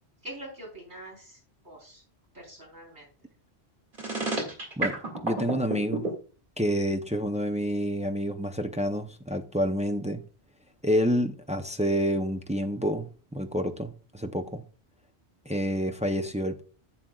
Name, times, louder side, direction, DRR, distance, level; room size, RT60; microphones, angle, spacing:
voice 1, 0.2-2.0 2.3-3.1, right 1 dB, 75° right, 4.7 m, -44 dB
sound 1, 3.9-6.1, right 3 dB, 50° right, 2.4 m, -29 dB
voice 2, 4.8-6.1 6.6-10.2 10.8-14.6 15.5-16.6, equal, 10° right, 0.3 m, -28 dB
11.0 x 7.6 x 2.3 m
omnidirectional pair, 1.1 m